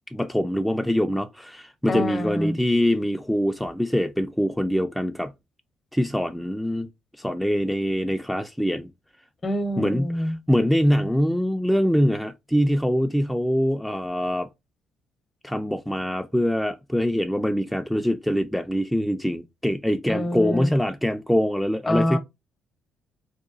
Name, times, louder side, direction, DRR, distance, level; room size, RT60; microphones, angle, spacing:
voice 1, 0.1-5.3 5.9-6.9 7.2-8.9 9.8-10.1 10.5-14.5 15.4-22.2, equal, ahead, 0.3 m, -24 dB
voice 2, 1.9-2.6 9.4-10.4 20.1-20.7 21.9-22.2, left 1 dB, 35° left, 0.6 m, -26 dB
2.8 x 2.2 x 2.5 m
hypercardioid pair, 45°, 0 cm